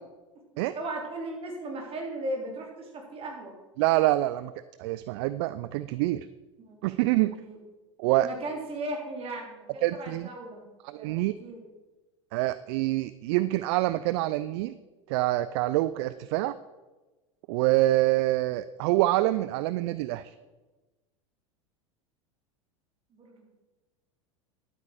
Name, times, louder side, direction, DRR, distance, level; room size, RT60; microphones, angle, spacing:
voice 1, 0.7-3.5 6.7-6.8 7.4-7.6 8.2-10.6 10.9-11.7 23.1-23.5, right 1 dB, 35° right, 0 dB, 3.6 m, -37 dB
voice 2, 3.8-4.5 4.8-6.3 6.8-7.4 8.0-8.3 9.8-10.3 10.8-11.3 12.3-14.8 15.1-16.5 17.5-20.3, right 17 dB, 55° right, 15 dB, 0.4 m, -26 dB
12.0 x 8.6 x 5.1 m, 1.2 s
hypercardioid pair, 85°, 17 cm